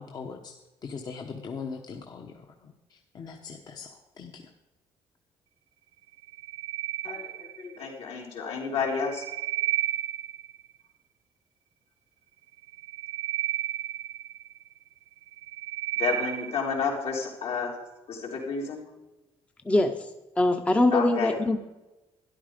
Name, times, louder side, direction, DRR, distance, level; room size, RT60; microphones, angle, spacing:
voice 1, 0.0-4.5, left 5 dB, 40° left, 3 dB, 1.1 m, -41 dB
sound 1, 6.2-7.9 8.8-10.7 12.6-14.7 15.2-16.8, right 13 dB, 70° right, 0.9 m, -33 dB
voice 2, 7.0-9.2 16.0-17.7 18.1-18.8 20.9-21.3, left 5 dB, 70° left, -1 dB, 3.7 m, -30 dB
voice 3, 19.6-20.1 20.4-21.6, left 2 dB, 10° left, 6 dB, 0.7 m, -23 dB
13.0 x 11.0 x 5.1 m, 1.0 s
cardioid pair, 145°, 11 cm